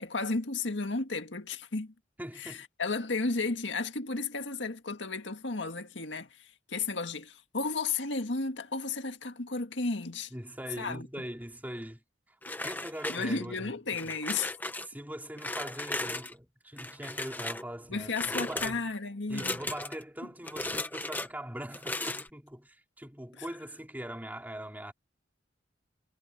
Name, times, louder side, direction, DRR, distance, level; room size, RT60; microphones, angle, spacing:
voice 1, 0.0-1.9 2.4-10.3 10.8-11.1 13.1-14.5 17.9-19.6 23.4-23.5, left 3 dB, 80° left, 1.9 m, -33 dB
voice 2, 2.2-2.7 10.3-12.4 12.6-13.7 14.8-18.1 18.4-18.9 19.3-24.9, right 1 dB, 10° right, 3.1 m, -41 dB
sound 1, 12.4-13.6 14.0-14.9 15.4-16.3 16.8-17.7 18.1-18.7 19.3-20.0 20.4-21.3 21.7-22.3, left 2 dB, 10° left, 1.2 m, -36 dB
head